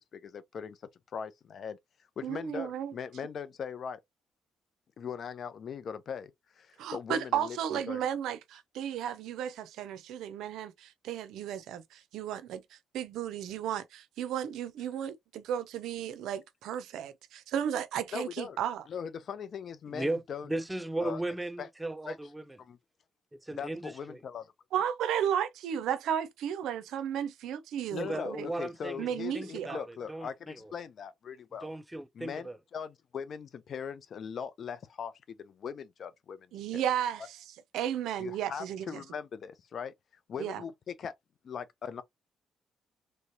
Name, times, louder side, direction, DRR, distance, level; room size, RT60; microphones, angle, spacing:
voice 1, 0.1-0.8 1.1-1.8 2.2-4.0 5.0-6.3 6.6-8.0 18.1-18.6 18.9-20.5 21.0-21.2 21.6-21.7 22.1-22.2 22.6-22.8 23.5-24.5 27.9-31.7 32.1-36.5 36.7-36.8 38.2-39.9 40.3-41.1 41.4-42.0, left 7 dB, 55° left, 0.6 m, -40 dB
voice 2, 2.2-2.9 6.8-12.6 12.9-18.8 24.7-28.5 29.0-29.8 36.5-37.4 37.7-39.0 40.4-40.6, right 9 dB, 85° right, 0.5 m, -34 dB
voice 3, 19.9-22.6 23.4-24.2 28.0-29.1 29.3-30.7 31.6-32.6, right 2 dB, 10° right, 0.5 m, -36 dB
3.2 x 3.0 x 2.7 m
cardioid pair, 90°, 0 cm